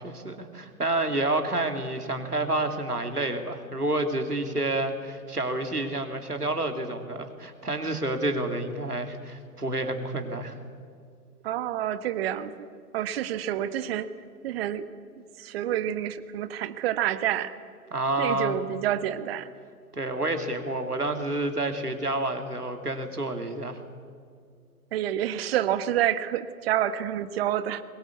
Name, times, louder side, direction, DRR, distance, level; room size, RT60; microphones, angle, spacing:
voice 1, 0.0-10.6 17.9-18.6 19.9-23.8, right 2 dB, 85° right, 6 dB, 2.8 m, -29 dB
voice 2, 11.4-12.7 12.9-14.1 14.4-14.8 15.4-17.6 18.2-19.5 24.9-27.8, right 11 dB, 40° right, 13 dB, 1.3 m, -28 dB
23.0 x 21.5 x 8.4 m, 2.2 s
figure-of-eight pair, 110°, 45 cm